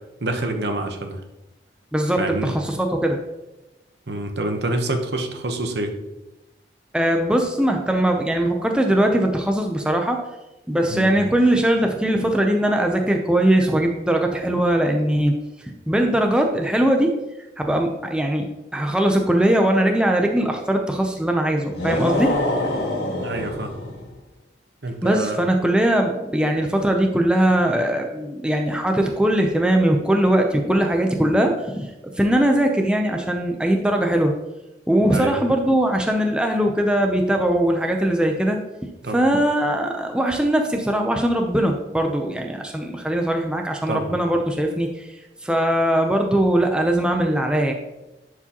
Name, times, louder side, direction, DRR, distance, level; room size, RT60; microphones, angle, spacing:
voice 1, 0.2-1.2 2.2-2.6 4.1-6.0 10.9-11.2 23.2-23.7 24.8-25.4 35.1-35.4 39.0-39.2 43.9-44.1, right 2 dB, 70° right, 5 dB, 0.9 m, -27 dB
voice 2, 1.9-3.2 6.9-10.2 10.7-15.3 15.9-17.1 17.6-22.3 25.0-31.9 32.2-34.3 34.9-38.6 39.1-45.1 45.4-47.7, right 1 dB, 5° right, 2 dB, 0.5 m, -20 dB
sound 1, 21.7-24.1, left 1 dB, 75° left, 1.7 m, -25 dB
10.5 x 4.9 x 2.9 m, 0.98 s
head